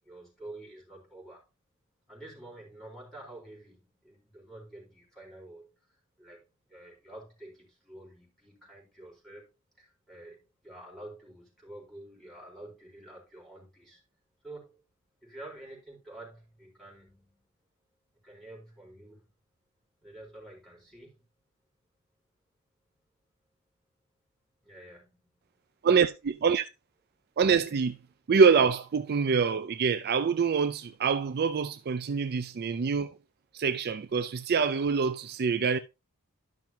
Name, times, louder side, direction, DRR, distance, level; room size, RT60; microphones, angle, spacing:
voice 1, 0.0-1.4 2.1-9.5 9.8-14.0 14.4-14.8 15.2-17.5 18.2-19.3 20.0-21.3 24.6-25.3, right 1 dB, ahead, 4.1 m, -49 dB
voice 2, 27.4-28.0 28.3-33.1 33.5-35.8, right 5 dB, 45° right, 0.4 m, -25 dB
12.0 x 5.9 x 2.8 m
head